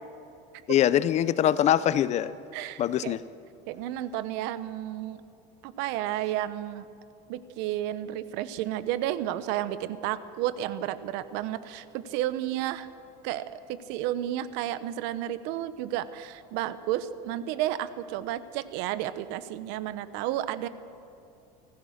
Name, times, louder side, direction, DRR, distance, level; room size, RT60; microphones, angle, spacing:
voice 1, 0.7-2.3 2.8-3.2, left 11 dB, 35° left, 17 dB, 0.6 m, -23 dB
voice 2, 2.5-3.1 3.7-5.2 5.6-6.9 7.3-12.9 13.2-20.7, right 13 dB, 65° right, 14 dB, 1.0 m, -32 dB
26.5 x 15.0 x 6.5 m, 2.7 s
supercardioid pair, 135°, 19 cm